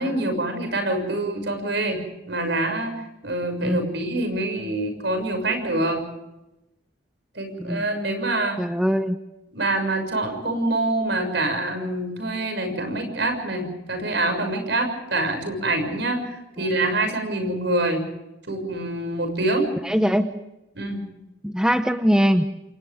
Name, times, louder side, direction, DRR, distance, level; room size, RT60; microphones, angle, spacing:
voice 1, 0.0-2.0 2.3-2.9 3.2-6.0 7.3-8.6 9.5-18.0 18.5-19.7 20.7-21.0, right 2 dB, 65° right, 6 dB, 6.7 m, -25 dB
voice 2, 8.6-9.2 19.8-20.3 21.4-22.5, equal, 5° right, 8 dB, 0.8 m, -21 dB
29.0 x 27.5 x 3.6 m, 0.94 s
head